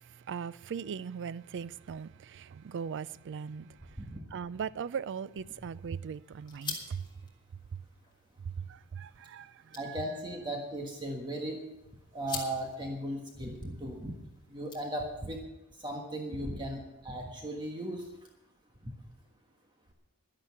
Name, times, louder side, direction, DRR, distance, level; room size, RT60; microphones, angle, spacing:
voice 1, 0.3-2.1 2.6-3.6 4.3-6.8 9.0-9.4, right 6 dB, 55° right, 0.4 m, -38 dB
sound 1, 5.0-15.4, left 5 dB, 20° left, 2.4 m, -48 dB
voice 2, 9.8-11.6 12.1-14.1 14.5-15.4 15.8-18.1 18.8-18.9, right 1 dB, 20° right, 1.4 m, -37 dB
11.5 x 11.0 x 7.0 m
head